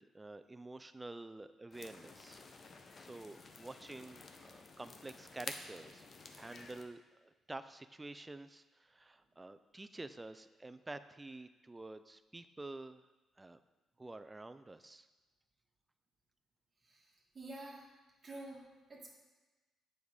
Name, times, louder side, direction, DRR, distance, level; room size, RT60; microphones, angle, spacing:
voice 1, 0.0-2.4 3.0-6.0 6.4-13.0 13.4-13.6 14.0-15.1, right 2 dB, 15° right, 11 dB, 0.4 m, -49 dB
sound 1, 1.7-6.8, left 3 dB, 40° left, 0.7 m, -51 dB
voice 2, 16.8-17.9 18.2-18.6 18.9-19.1, right 2 dB, 35° right, -3 dB, 1.5 m, -49 dB
7.1 x 5.2 x 4.9 m, 1.2 s
cardioid pair, 90°, 0 cm